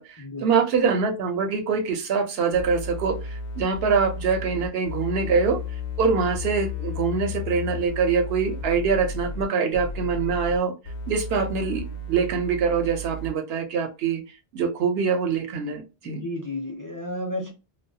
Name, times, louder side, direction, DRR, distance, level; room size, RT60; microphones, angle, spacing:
voice 1, 0.0-5.6 6.0-10.7 11.1-14.2 14.5-16.2, right 5 dB, 75° right, 0.8 m, -24 dB
sound 1, 2.5-9.5 9.7-10.6 10.8-13.3, left 3 dB, 70° left, 0.8 m, -33 dB
voice 2, 16.0-17.5, left 1 dB, 30° left, 0.4 m, -32 dB
2.2 x 2.2 x 2.6 m
omnidirectional pair, 1.0 m